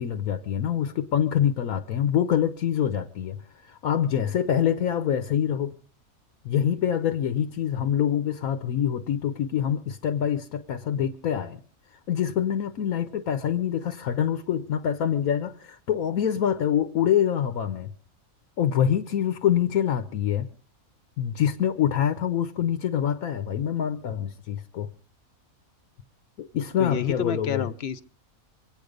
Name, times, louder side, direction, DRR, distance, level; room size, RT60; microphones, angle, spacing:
voice 1, 0.0-5.8 6.4-11.6 12.1-17.9 18.6-20.5 21.2-24.9 26.4-27.7, left 9 dB, 80° left, 1.3 m, -25 dB
voice 2, 26.8-28.0, left 7 dB, 50° left, 1.0 m, -29 dB
25.5 x 9.1 x 5.2 m
omnidirectional pair, 1.5 m